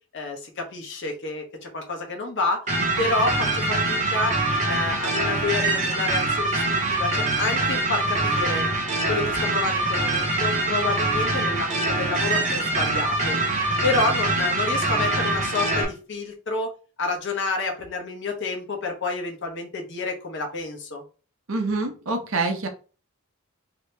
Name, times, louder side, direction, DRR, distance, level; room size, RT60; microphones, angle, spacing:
voice 1, 0.1-2.6 3.0-4.3 4.7-8.7 9.1-13.4 13.8-16.7 17.0-21.0, left 3 dB, 55° left, 2 dB, 0.9 m, -29 dB
sound 1, 2.7-15.9, right 2 dB, 35° right, 0.7 m, -24 dB
voice 2, 21.5-22.7, right 3 dB, 65° right, 4 dB, 0.7 m, -26 dB
2.8 x 2.8 x 3.3 m, 0.35 s
head